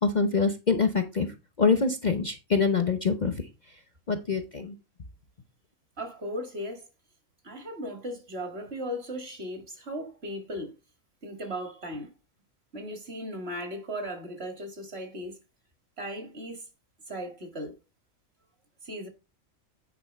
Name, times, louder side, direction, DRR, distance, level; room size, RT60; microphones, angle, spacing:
voice 1, 0.0-1.3 1.6-3.3 4.1-4.8, left 5 dB, 40° left, 0.8 m, -25 dB
voice 2, 6.0-6.9 7.4-10.7 11.2-12.1 12.7-15.4 16.0-16.6 17.1-17.8 18.8-19.1, equal, 50° right, 2.2 m, -37 dB
9.6 x 4.5 x 4.5 m
omnidirectional pair, 1.4 m